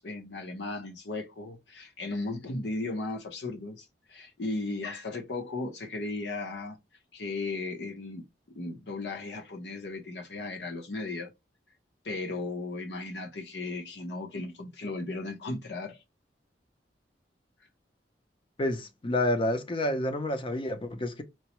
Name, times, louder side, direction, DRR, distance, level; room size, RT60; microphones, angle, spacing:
voice 1, 0.0-6.8 7.1-8.2 8.5-11.3 12.0-16.0, left 2 dB, 70° left, 0.8 m, -36 dB
voice 2, 18.6-21.2, left 1 dB, 30° left, 0.5 m, -29 dB
4.5 x 2.1 x 2.9 m
head